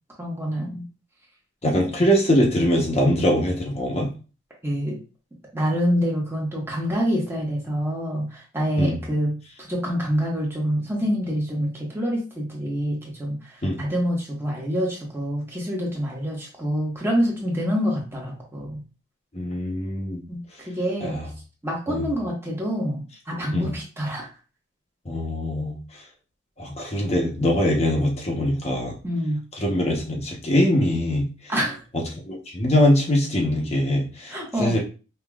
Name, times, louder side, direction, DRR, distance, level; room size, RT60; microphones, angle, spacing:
voice 1, 0.2-0.8 4.6-5.0 5.5-18.8 20.3-21.2 21.6-23.0 23.3-24.3 29.0-29.4 31.5-31.8 34.3-34.7, equal, 15° right, -3 dB, 1.2 m, -26 dB
voice 2, 1.6-4.1 8.8-9.0 13.6-13.8 19.3-20.2 21.0-21.3 21.9-22.1 23.5-23.7 25.1-25.7 26.6-28.9 29.6-31.3 31.9-34.8, left 1 dB, 35° left, -1 dB, 0.9 m, -22 dB
5.6 x 2.9 x 2.4 m, 0.34 s
head